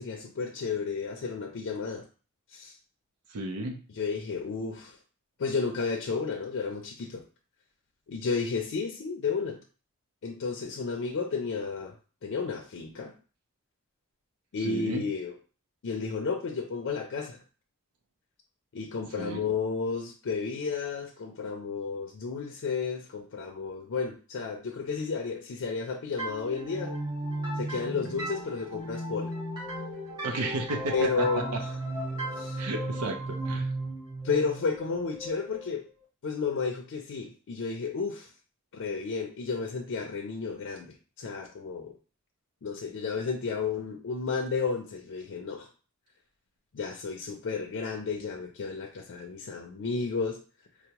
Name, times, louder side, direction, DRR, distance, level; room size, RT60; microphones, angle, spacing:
voice 1, 0.0-2.0 2.5-2.8 4.0-5.0 5.4-7.2 8.1-9.6 10.2-11.9 12.2-13.1 14.5-15.3 15.8-17.4 18.7-26.9 27.6-29.3 30.9-31.7 32.4-32.6 34.2-35.8 36.2-38.3 38.7-41.9 42.6-45.7 46.7-50.4, left 5 dB, 60° left, 2 dB, 0.4 m, -32 dB
voice 2, 3.3-3.8 14.6-15.0 19.2-19.4 30.2-31.6 32.6-33.7, right 2 dB, 85° right, 3 dB, 0.5 m, -33 dB
sound 1, 26.2-35.7, right 1 dB, 20° right, 1.2 m, -35 dB
4.5 x 2.0 x 2.9 m, 0.37 s
head